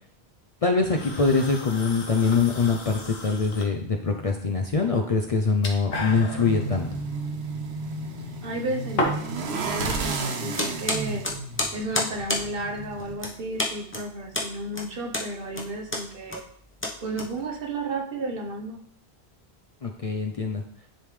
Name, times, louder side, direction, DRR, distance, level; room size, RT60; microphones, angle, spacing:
voice 1, 0.6-6.9 19.8-20.6, left 4 dB, 45° left, 2 dB, 0.5 m, -24 dB
sound 1, 0.8-9.4, left 1 dB, 70° left, 1.3 m, -36 dB
sound 2, 5.9-13.1, right 3 dB, 80° right, 1.0 m, -32 dB
voice 2, 8.4-11.2 11.7-16.4 17.0-18.8, right 2 dB, 60° right, 1 dB, 1.1 m, -33 dB
sound 3, 10.6-17.8, left 1 dB, 10° left, 0.9 m, -31 dB
10.0 x 3.5 x 3.2 m, 0.63 s
omnidirectional pair, 1.1 m